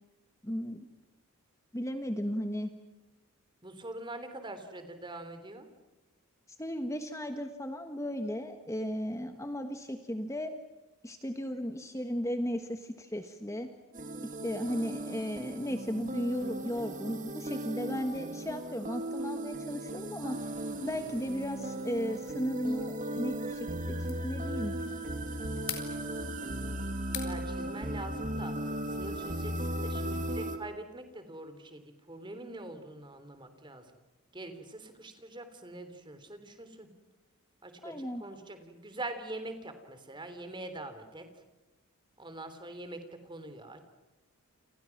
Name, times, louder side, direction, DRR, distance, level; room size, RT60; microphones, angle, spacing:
voice 1, 0.4-0.8 1.7-2.7 6.5-10.5 11.0-13.7 14.4-20.4 20.8-24.7 37.8-38.2, equal, 15° left, 7 dB, 1.4 m, -35 dB
voice 2, 3.6-5.7 27.2-33.9 34.3-36.9 37.6-41.4 42.2-43.9, right 2 dB, 20° right, 9 dB, 3.4 m, -44 dB
sound 1, 13.9-30.6, right 1 dB, 35° right, 2.6 m, -37 dB
sound 2, 20.3-28.7, left 10 dB, 75° left, 4.8 m, -48 dB
29.5 x 29.5 x 6.0 m, 1.1 s
head